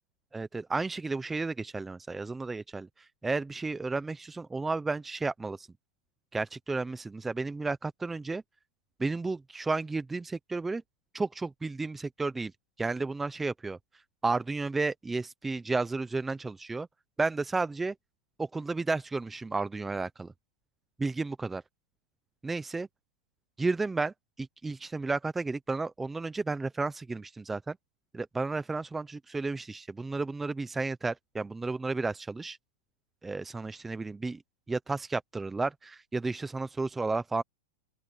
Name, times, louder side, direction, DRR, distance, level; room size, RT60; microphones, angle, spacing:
voice 1, 0.3-5.7 6.3-8.4 9.0-10.8 11.1-12.5 12.8-13.8 14.2-16.9 17.2-17.9 18.4-20.3 21.0-21.6 22.4-22.9 23.6-27.8 28.1-32.6 33.2-34.4 34.7-37.4, right 3 dB, 5° right, 0.4 m, -32 dB
open air
supercardioid pair, 170°, 3 cm